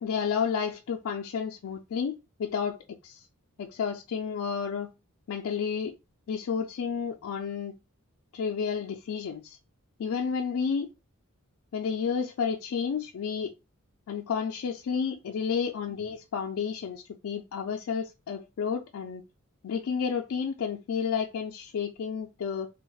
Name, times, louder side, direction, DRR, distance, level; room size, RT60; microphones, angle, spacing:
voice 1, 0.0-2.1 2.4-2.8 3.0-3.2 3.6-4.9 5.3-5.9 6.3-7.7 8.3-9.6 10.0-10.9 11.7-13.5 14.1-19.2 19.6-22.7, left 6 dB, 70° left, 0.3 m, -31 dB
2.2 x 2.0 x 3.8 m
head